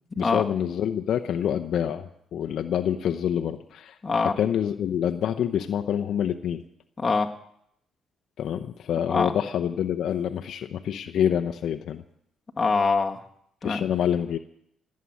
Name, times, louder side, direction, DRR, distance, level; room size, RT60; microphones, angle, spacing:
voice 1, 0.2-4.0 4.4-6.6 8.4-12.0 13.6-14.4, left 9 dB, 70° left, 6 dB, 0.7 m, -27 dB
voice 2, 4.0-4.3 7.0-7.3 9.1-9.3 12.6-13.2 13.6-13.8, left 4 dB, 25° left, 2 dB, 1.7 m, -24 dB
17.0 x 7.6 x 9.7 m, 0.72 s
cardioid pair, 90°, 0 cm